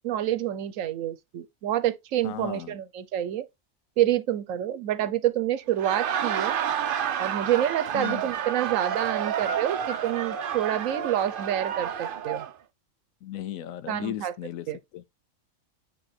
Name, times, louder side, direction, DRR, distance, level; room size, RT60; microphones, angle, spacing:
voice 1, 0.0-3.5 4.0-6.6 7.2-12.4 13.9-14.3 14.7-14.8, right 11 dB, 80° right, 1.1 m, -27 dB
voice 2, 2.2-2.8 7.9-8.3 13.2-14.7 14.9-15.0, left 12 dB, 85° left, 1.1 m, -35 dB
Laughter, 5.7-12.5, right 8 dB, 55° right, 0.6 m, -30 dB
8.5 x 2.9 x 4.2 m
omnidirectional pair, 1.4 m